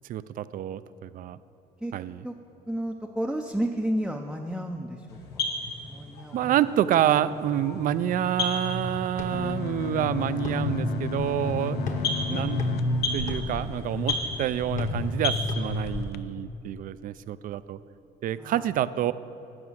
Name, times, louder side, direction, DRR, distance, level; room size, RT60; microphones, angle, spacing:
voice 1, 0.1-1.4 1.9-2.3 6.3-11.8 12.3-12.6 13.1-17.8 18.2-19.1, right 11 dB, 55° right, 15 dB, 0.4 m, -28 dB
voice 2, 2.7-5.2 5.9-6.6 12.3-12.5 18.4-18.7, right 1 dB, ahead, 2 dB, 0.5 m, -31 dB
sound 1, 5.1-16.0, left 2 dB, 90° left, 1.7 m, -31 dB
sound 2, 9.1-16.0, left 3 dB, 45° left, 1.2 m, -41 dB
sound 3, 9.3-14.3 14.9-15.0 15.3-15.4 15.9-16.2, left 9 dB, 65° left, 0.4 m, -36 dB
11.0 x 7.2 x 6.4 m, 2.8 s
cardioid pair, 110°, 17 cm